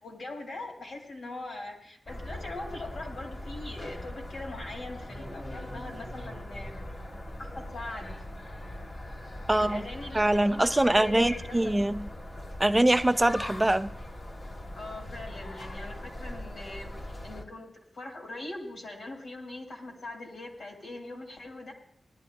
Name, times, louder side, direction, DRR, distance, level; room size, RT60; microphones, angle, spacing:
voice 1, 0.0-6.8 7.4-8.2 9.5-11.7 14.8-21.7, left 2 dB, 70° left, 0 dB, 3.9 m, -41 dB
sound 1, 2.1-17.4, left 1 dB, 45° left, 2.2 m, -41 dB
voice 2, 9.5-9.8 10.1-12.1 12.6-13.9, right 1 dB, 15° right, 10 dB, 0.6 m, -23 dB
19.5 x 12.0 x 2.9 m, 0.65 s
wide cardioid pair, 80°, 0 cm